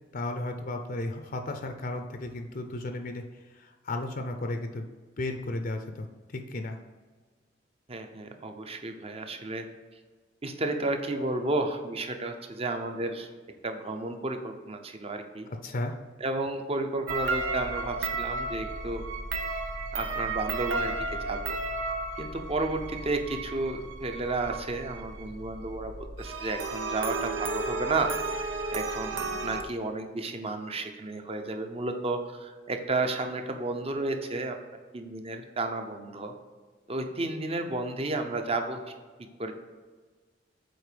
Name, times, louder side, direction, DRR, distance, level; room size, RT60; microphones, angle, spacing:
voice 1, 0.1-4.9 5.2-6.8 15.6-16.0, left 2 dB, 50° left, 5 dB, 0.6 m, -34 dB
voice 2, 7.9-9.6 10.4-13.3 13.6-15.5 16.2-19.0 19.9-21.0 21.3-21.6 22.2-28.1 28.7-34.6 34.9-36.3 36.9-38.8 39.4-39.5, right 2 dB, 35° right, 5 dB, 0.8 m, -32 dB
sound 1, 17.1-29.6, right 3 dB, 90° right, 0.8 m, -33 dB
7.9 x 4.5 x 5.1 m, 1.4 s
head